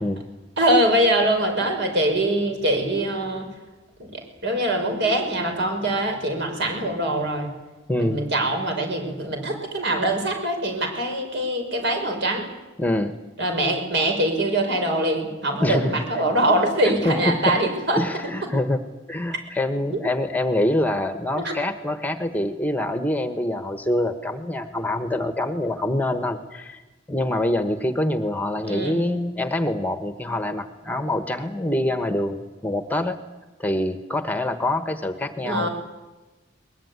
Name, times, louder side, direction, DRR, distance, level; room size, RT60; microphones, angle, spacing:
voice 1, 0.6-3.5 4.0-7.5 8.0-12.5 13.4-18.0 21.3-21.5 28.6-29.0 35.4-35.7, right 1 dB, 65° right, 4 dB, 5.7 m, -23 dB
voice 2, 7.9-8.2 12.8-13.2 15.6-16.0 17.0-17.6 18.0-18.8 19.1-26.8 27.1-33.2 33.6-35.7, left 1 dB, 10° left, 9 dB, 1.2 m, -25 dB
22.0 x 21.0 x 9.6 m, 1.1 s
head